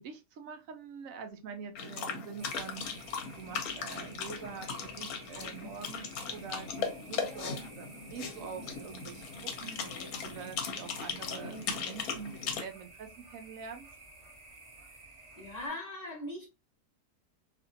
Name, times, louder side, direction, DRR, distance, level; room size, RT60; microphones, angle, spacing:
voice 1, 0.0-13.9, right 6 dB, 70° right, 0.8 m, -45 dB
sound 1, 1.7-12.6, left 5 dB, 65° left, 1.0 m, -38 dB
sound 2, 2.4-15.7, right 2 dB, 45° right, 0.4 m, -53 dB
voice 2, 15.4-16.5, left 1 dB, 35° left, 0.7 m, -39 dB
2.8 x 2.5 x 2.6 m
omnidirectional pair, 1.8 m